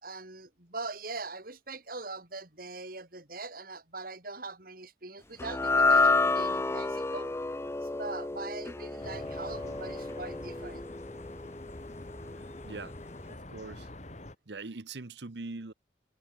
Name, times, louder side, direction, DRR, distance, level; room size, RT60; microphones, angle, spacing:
voice 1, 0.0-7.3 7.8-10.8, right 3 dB, 55° right, 4.9 m, -42 dB
sound 1, 5.4-11.8, left 3 dB, 15° left, 0.5 m, -29 dB
sound 2, 9.0-14.4, left 1 dB, 40° left, 2.3 m, -45 dB
voice 2, 12.6-12.9 13.2-13.9 14.5-15.7, right 3 dB, 75° right, 1.0 m, -42 dB
head